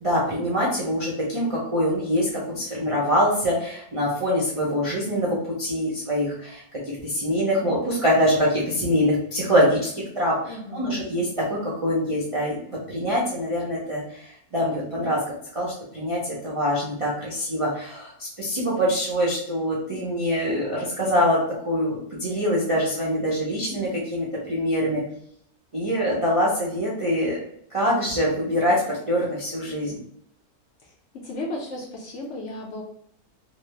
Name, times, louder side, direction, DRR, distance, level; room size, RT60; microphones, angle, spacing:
voice 1, 0.0-9.9 10.1-15.2 15.5-21.4 21.6-25.0 25.7-27.4 27.7-30.0, equal, 50° right, -6 dB, 0.3 m, -24 dB
voice 2, 10.5-11.0 31.2-32.8, left 1 dB, 65° left, -1 dB, 0.7 m, -34 dB
3.2 x 2.0 x 3.1 m, 0.68 s
omnidirectional pair, 1.6 m